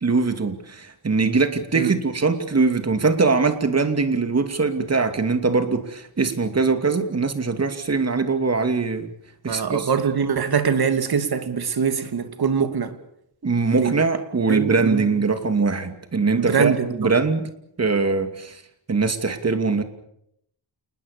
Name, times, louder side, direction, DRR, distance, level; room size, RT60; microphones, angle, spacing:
voice 1, 0.0-9.1 9.4-9.9 13.4-17.5 17.8-18.6 18.9-19.8, right 4 dB, 35° right, 2.7 m, -22 dB
voice 2, 9.5-12.9 13.8-14.0 14.5-15.1 16.4-17.1, right 6 dB, 55° right, 2.7 m, -23 dB
28.5 x 20.5 x 7.0 m
wide cardioid pair, 135°, 44 cm